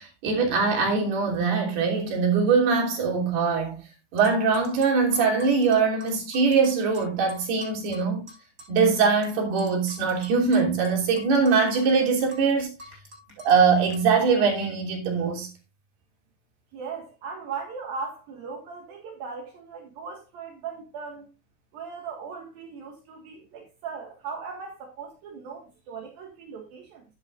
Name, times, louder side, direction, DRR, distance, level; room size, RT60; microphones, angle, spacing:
voice 1, 0.0-3.8 4.1-8.3 8.7-12.7 13.4-15.5, right 5 dB, 85° right, 5.1 m, -22 dB
sound 1, 4.2-9.3 9.6-13.6 13.9-14.0, left 1 dB, 20° right, 7.3 m, -46 dB
voice 2, 16.7-21.3 21.7-27.0, right 5 dB, 70° right, 3.4 m, -38 dB
12.0 x 11.0 x 2.5 m
omnidirectional pair, 4.5 m